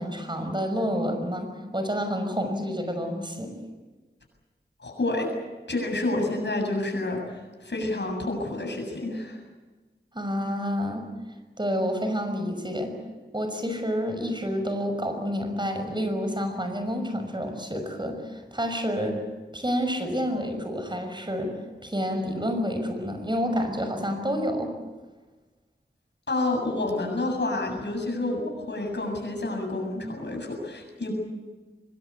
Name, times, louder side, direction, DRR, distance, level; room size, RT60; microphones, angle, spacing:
voice 1, 0.0-3.5 10.1-11.1 11.6-12.9 13.3-19.2 19.5-21.5 21.8-24.7, equal, 25° right, 6 dB, 5.9 m, -29 dB
voice 2, 4.8-5.3 5.7-9.4 26.3-31.1, left 2 dB, 80° left, 2 dB, 7.6 m, -29 dB
24.0 x 22.5 x 8.4 m, 1.2 s
wide cardioid pair, 60°, 18 cm